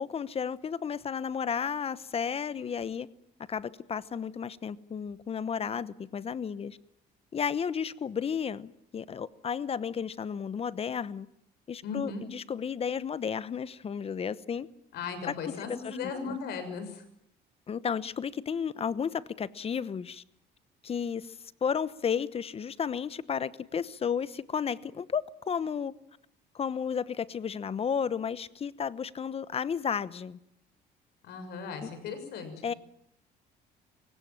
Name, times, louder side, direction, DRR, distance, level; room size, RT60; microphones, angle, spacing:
voice 1, 0.0-3.1 3.5-6.8 7.3-11.3 11.7-14.7 15.2-16.4 17.7-20.2 20.8-21.4 21.6-25.9 26.5-30.4 31.8-31.9 32.6-32.7, left 7 dB, 35° left, 1.0 m, -33 dB
voice 2, 11.8-12.3 14.9-17.0 31.2-32.5, left 5 dB, 75° left, 6.6 m, -37 dB
28.0 x 16.5 x 8.9 m
cardioid pair, 110°, 17 cm